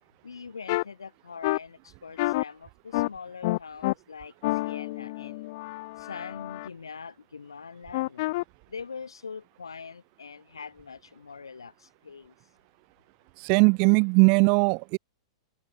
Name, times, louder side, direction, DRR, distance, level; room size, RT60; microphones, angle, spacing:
voice 1, 0.2-5.5 6.0-8.3 8.7-12.3, left 5 dB, 75° left, 3.8 m, -43 dB
sound 1, 0.7-0.8 1.4-1.6 2.2-2.4 2.9-3.1 3.4-3.9 4.4-6.7 7.9-8.4, left 20 dB, 45° left, 0.7 m, -29 dB
voice 2, 13.4-15.0, right 38 dB, 40° right, 0.4 m, -20 dB
open air
figure-of-eight pair, 100°, 2 cm